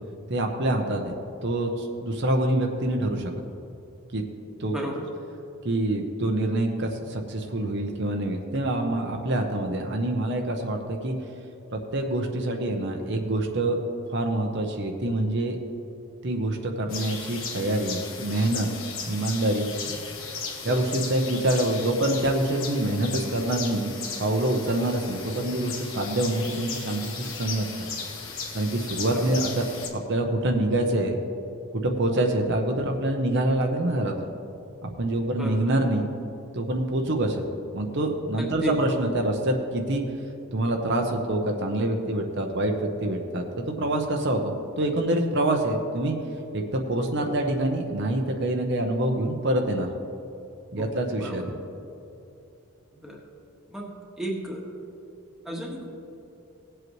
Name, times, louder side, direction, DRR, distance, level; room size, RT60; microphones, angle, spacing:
voice 1, 0.3-1.1 1.4-3.3 4.1-4.2 4.6-4.8 5.6-11.1 11.7-13.8 14.1-15.6 16.2-18.7 19.0-20.0 20.6-23.9 24.2-27.7 28.5-31.2 31.7-34.2 34.8-36.1 36.5-37.4 37.7-40.0 40.5-46.2 46.5-49.9 50.7-51.5, right 1 dB, 50° right, 3 dB, 0.8 m, -26 dB
sound 1, 16.9-29.9, left 5 dB, 65° left, 1.4 m, -36 dB
voice 2, 35.4-35.7 38.4-39.0 50.8-50.9 51.2-51.4 53.0-53.2 53.7-53.9 54.2-54.6 55.4-55.9, right 1 dB, ahead, -2 dB, 1.4 m, -33 dB
18.0 x 7.9 x 3.1 m, 2.8 s
head